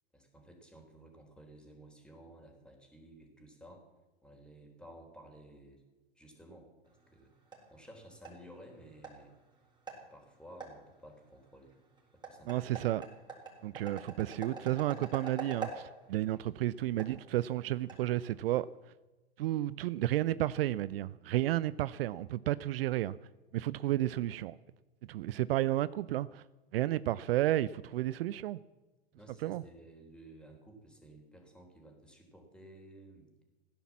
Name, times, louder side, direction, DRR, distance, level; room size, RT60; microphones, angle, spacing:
voice 1, 0.1-3.9 4.2-5.8 6.2-7.3 7.7-9.3 10.1-11.7 12.1-12.7 29.1-33.4, right 1 dB, 5° left, 2 dB, 3.8 m, -54 dB
sound 1, 6.8-18.7, right 4 dB, 15° right, 4.4 m, -47 dB
voice 2, 12.5-13.0 13.6-18.7 19.4-23.2 23.5-24.6 25.1-26.4 26.7-28.6 29.4-29.6, right 14 dB, 65° right, 18 dB, 0.5 m, -32 dB
16.0 x 10.5 x 7.4 m, 1.2 s
hypercardioid pair, 105°, 31 cm